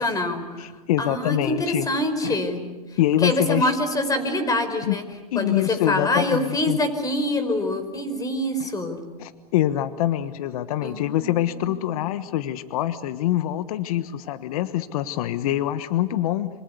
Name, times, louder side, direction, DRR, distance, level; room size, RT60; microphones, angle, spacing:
voice 1, 0.0-0.7 1.0-2.6 2.9-5.0 5.3-9.0 10.8-12.0, left 1 dB, 20° left, 10 dB, 4.8 m, -25 dB
voice 2, 0.6-1.9 2.2-2.4 3.0-3.7 4.8-5.0 5.3-6.8 8.6-8.7 9.2-16.5, left 13 dB, 70° left, 13 dB, 1.3 m, -25 dB
27.0 x 24.5 x 8.2 m, 1.2 s
hypercardioid pair, 110°, 19 cm